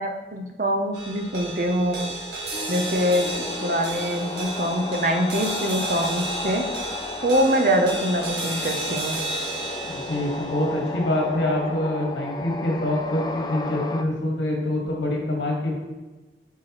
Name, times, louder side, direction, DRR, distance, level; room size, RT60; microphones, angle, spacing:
voice 1, 0.0-2.1 2.7-6.6 7.2-9.2, equal, 45° right, 4 dB, 0.6 m, -24 dB
sound 1, 0.9-13.4, right 2 dB, 80° right, 1.6 m, -33 dB
sound 2, 2.5-14.0, left 3 dB, 25° left, 0.3 m, -34 dB
voice 2, 9.8-15.7, left 1 dB, 85° left, -1 dB, 1.6 m, -25 dB
8.6 x 4.6 x 3.0 m, 1.2 s
head